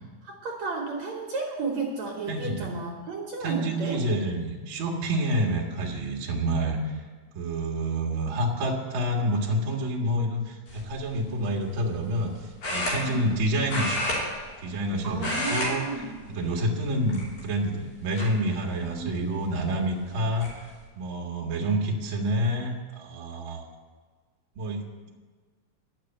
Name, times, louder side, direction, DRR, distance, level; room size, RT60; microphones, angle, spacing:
voice 1, 0.2-4.0 13.0-13.2 15.0-16.2 18.8-19.4, right 3 dB, 65° right, 0 dB, 2.3 m, -33 dB
voice 2, 2.3-2.7 3.4-6.9 7.3-12.3 12.7-14.0 14.6-15.8 16.4-23.6 24.6-25.1, right 1 dB, 45° right, 0 dB, 1.9 m, -28 dB
sound 1, 10.7-11.0 12.6-13.4 13.7-14.9 15.1-15.7 16.0-16.3 17.0-17.6 18.2-18.3 19.7-19.8 20.1-20.5, left 1 dB, 65° left, 4.7 m, -30 dB
10.5 x 6.7 x 8.9 m, 1.4 s
omnidirectional pair, 3.8 m